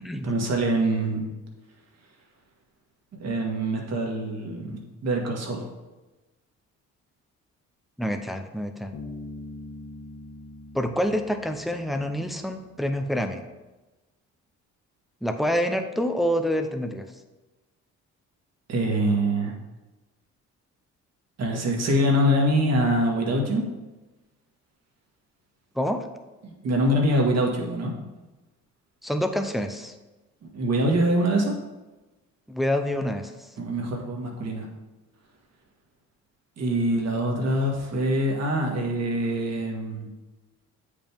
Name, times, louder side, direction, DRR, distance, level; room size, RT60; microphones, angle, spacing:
voice 1, 0.2-1.3 3.2-5.6 18.7-19.6 21.4-23.7 26.4-28.0 30.4-31.6 33.6-34.7 36.6-40.1, right 1 dB, 55° right, 0 dB, 1.8 m, -24 dB
voice 2, 8.0-8.9 10.7-13.4 15.2-17.1 25.8-26.1 29.0-29.9 32.5-33.3, equal, ahead, 6 dB, 0.6 m, -27 dB
Bass guitar, 8.9-12.6, left 2 dB, 65° left, 1.8 m, -42 dB
8.5 x 5.2 x 3.5 m, 1.1 s
cardioid pair, 90°, 30 cm